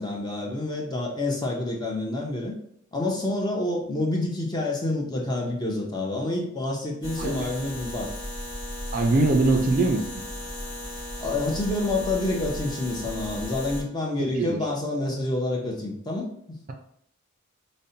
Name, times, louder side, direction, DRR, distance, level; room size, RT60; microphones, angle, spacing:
voice 1, 0.0-2.5 2.9-8.1 11.2-16.6, left 2 dB, 20° left, -2 dB, 0.5 m, -28 dB
sound 1, 7.0-13.8, left 1 dB, 55° left, 1.2 m, -35 dB
voice 2, 7.2-7.5 8.9-10.0 14.2-14.6, right 2 dB, 40° right, 3 dB, 0.3 m, -22 dB
5.1 x 2.1 x 2.7 m, 0.70 s
head